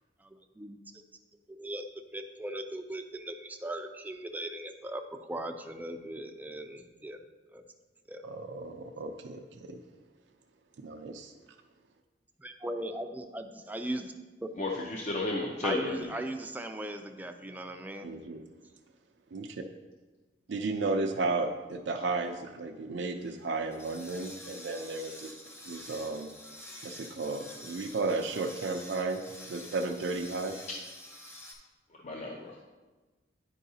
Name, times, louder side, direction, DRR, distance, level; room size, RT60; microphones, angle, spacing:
voice 1, 0.2-0.8 1.5-1.9 2.1-5.0 5.3-7.2 7.5-7.6 8.1-8.3 12.4-14.1 14.4-14.5 15.6-18.1, right 1 dB, 10° right, 6 dB, 0.4 m, -38 dB
voice 2, 8.2-9.8 10.8-11.3 18.0-18.4 19.3-19.6 20.5-25.4 25.6-26.3 26.8-29.2 29.5-30.6, right 3 dB, 75° right, 4 dB, 0.4 m, -34 dB
voice 3, 14.6-16.1 32.0-32.6, left 2 dB, 40° left, -1 dB, 0.5 m, -33 dB
sound 1, 23.2-31.5, left 1 dB, 15° left, 0.8 m, -48 dB
9.9 x 4.6 x 2.7 m, 1.2 s
head